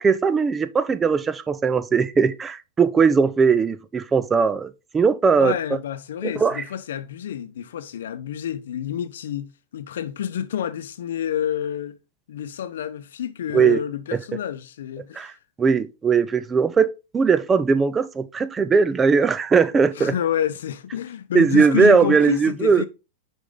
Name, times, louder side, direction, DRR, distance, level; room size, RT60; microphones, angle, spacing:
voice 1, 0.0-5.6 6.2-6.6 13.5-13.8 14.1-14.2 15.2-15.3 15.6-16.9 17.1-20.1 21.3-22.8, right 5 dB, 15° right, 0.5 m, -19 dB
voice 2, 5.4-12.0 12.3-15.4 20.0-22.9, left 9 dB, 80° left, 0.7 m, -28 dB
5.2 x 5.1 x 3.7 m
hypercardioid pair, 130°, 0 cm